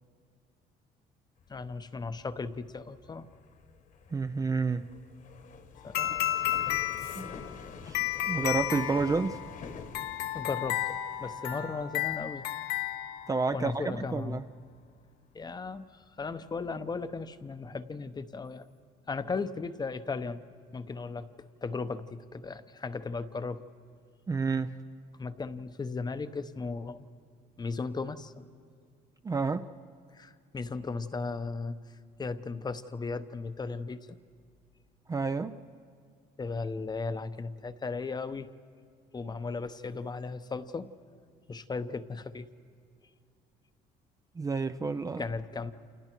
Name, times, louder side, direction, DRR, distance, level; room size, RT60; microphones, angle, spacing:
sound 1, 1.4-16.0 16.4-16.8 17.1-17.4, left 5 dB, 50° left, 1.5 m, -48 dB
voice 1, 1.5-3.3 5.8-6.5 10.3-12.4 13.5-14.4 15.3-18.7 19.1-20.4 20.7-21.3 21.6-23.6 25.2-27.0 27.6-28.5 30.1-31.8 32.2-34.2 36.4-38.5 39.1-40.9 41.5-42.5 45.2-45.7, left 4 dB, 25° left, 11 dB, 0.9 m, -36 dB
voice 2, 4.1-4.9 7.2-7.3 7.8-9.4 13.3-14.4 24.3-24.8 29.2-29.7 35.1-35.6 44.4-45.2, right 4 dB, 20° right, 10 dB, 0.5 m, -30 dB
sound 2, 5.9-13.6, left 13 dB, 75° left, 1.3 m, -33 dB
29.5 x 27.5 x 4.6 m, 2.2 s
cardioid pair, 110°, 17 cm